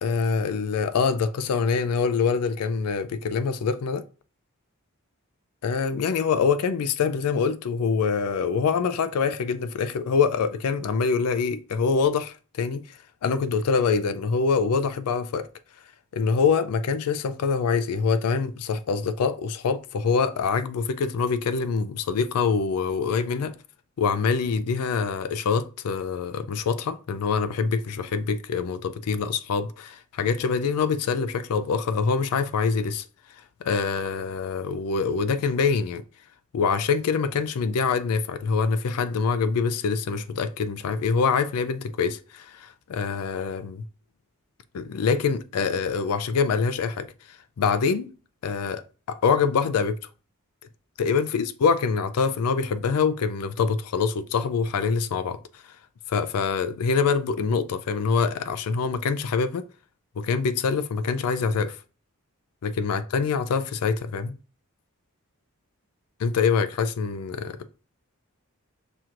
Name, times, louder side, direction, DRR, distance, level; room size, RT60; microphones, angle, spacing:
voice 1, 0.0-4.0 5.6-15.5 16.1-23.5 24.0-33.0 33.6-36.0 36.5-43.8 44.7-47.1 47.6-48.1 48.4-48.8 49.1-50.0 51.0-55.4 56.1-59.6 60.2-61.8 62.6-64.4 66.2-67.6, left 5 dB, 85° left, 0.4 m, -25 dB
6.0 x 2.8 x 2.5 m
head